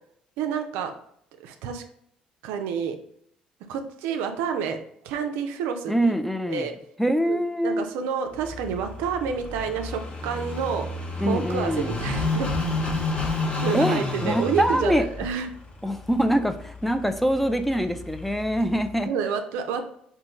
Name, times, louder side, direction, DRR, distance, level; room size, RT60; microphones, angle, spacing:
voice 1, 0.4-0.9 1.4-1.8 2.4-3.0 3.7-4.8 5.0-5.9 6.5-6.7 7.3-10.9 11.2-12.5 13.6-15.5 19.0-19.8, right 6 dB, 65° right, 6 dB, 0.4 m, -29 dB
voice 2, 5.9-6.7 7.0-7.9 11.2-11.9 13.2-13.5 13.7-15.0 15.8-19.1, equal, 5° left, 9 dB, 0.3 m, -24 dB
Car passing by / Idling, 8.3-19.0, left 2 dB, 30° left, 0.8 m, -31 dB
4.2 x 2.2 x 2.9 m, 0.68 s
figure-of-eight pair, 50°, 4 cm